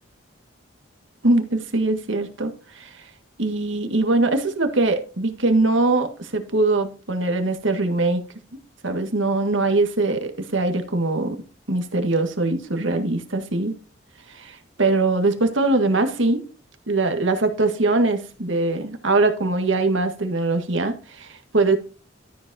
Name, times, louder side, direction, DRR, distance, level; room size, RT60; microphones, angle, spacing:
voice 1, 1.2-2.9 3.4-8.2 8.8-11.4 11.7-13.8 14.3-16.4 16.9-21.8, right 2 dB, 80° right, 6 dB, 1.8 m, -22 dB
13.0 x 7.7 x 2.8 m, 0.37 s
head